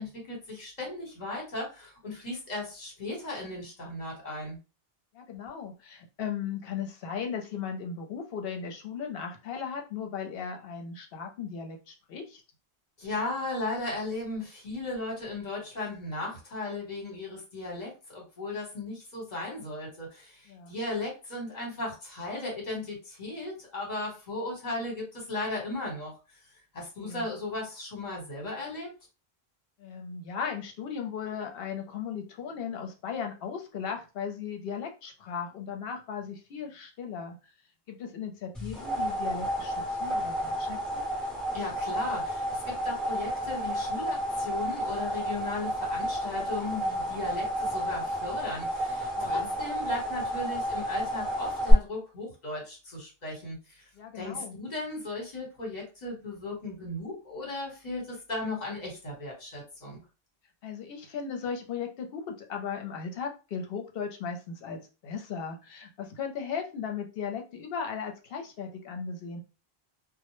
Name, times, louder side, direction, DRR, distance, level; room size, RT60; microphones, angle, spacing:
voice 1, 0.0-4.6 13.0-26.1 26.7-28.9 41.5-53.9 54.1-60.0, left 2 dB, 45° left, -1 dB, 1.1 m, -36 dB
voice 2, 5.1-12.4 20.5-20.7 27.0-27.3 29.8-37.4 37.9-41.1 49.2-49.5 53.9-54.6 60.6-69.4, left 6 dB, 70° left, 4 dB, 0.8 m, -37 dB
sound 1, 38.5-51.7, equal, ahead, 0.9 m, -31 dB
2.0 x 2.0 x 3.0 m, 0.31 s
omnidirectional pair, 1.0 m